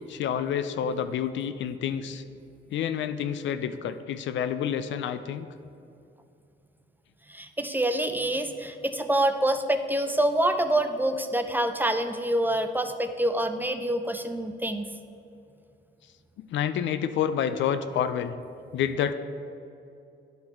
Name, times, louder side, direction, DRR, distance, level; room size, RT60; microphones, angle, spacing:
voice 1, 0.1-2.2 2.7-5.5 16.4-18.3 18.7-19.1, left 8 dB, 70° left, 10 dB, 0.4 m, -28 dB
voice 2, 7.3-14.9, right 1 dB, 10° right, 7 dB, 0.4 m, -26 dB
10.5 x 4.0 x 4.3 m, 2.6 s
cardioid pair, 90°, 20 cm